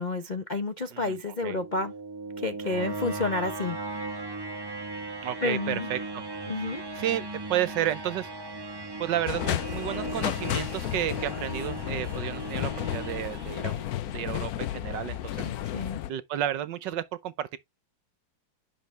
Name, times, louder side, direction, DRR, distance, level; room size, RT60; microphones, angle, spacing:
voice 1, 0.0-1.9 2.4-4.0 5.4-5.9 6.5-6.8 15.4-16.0, left 3 dB, 45° left, 0.5 m, -30 dB
voice 2, 0.9-1.6 5.2-6.2 6.5-8.3 9.0-15.5 16.1-17.6, right 11 dB, 70° right, 1.3 m, -32 dB
sound 1, 1.3-14.3, right 2 dB, 25° right, 0.5 m, -38 dB
sound 2, 9.3-16.1, left 13 dB, 70° left, 0.9 m, -32 dB
10.5 x 6.1 x 3.2 m
omnidirectional pair, 2.2 m